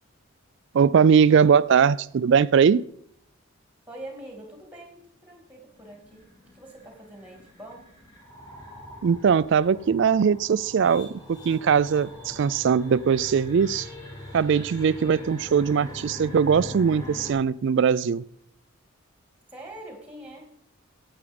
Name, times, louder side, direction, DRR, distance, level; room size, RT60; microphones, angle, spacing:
voice 1, 0.7-2.9 9.0-13.9 14.3-18.2, right 6 dB, 55° right, 0.3 m, -20 dB
voice 2, 3.9-6.3 6.5-7.8 19.5-20.5, right 1 dB, 5° right, 2.2 m, -43 dB
sound 1, 5.7-17.3, left 1 dB, 15° left, 2.8 m, -42 dB
10.0 x 8.1 x 5.1 m
head